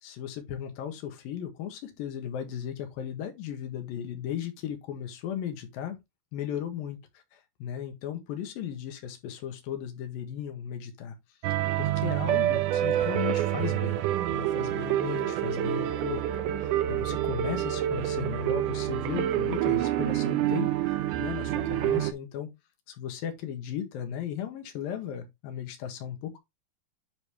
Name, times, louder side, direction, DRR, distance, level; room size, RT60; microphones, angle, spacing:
voice 1, 0.0-6.0 6.3-7.0 7.6-11.1 11.5-14.0 14.3-16.2 16.5-22.5 22.9-26.4, left 9 dB, 70° left, 3.2 m, -36 dB
sound 1, 11.4-22.1, right 13 dB, 75° right, 1.9 m, -27 dB
10.5 x 4.1 x 3.3 m
omnidirectional pair, 4.4 m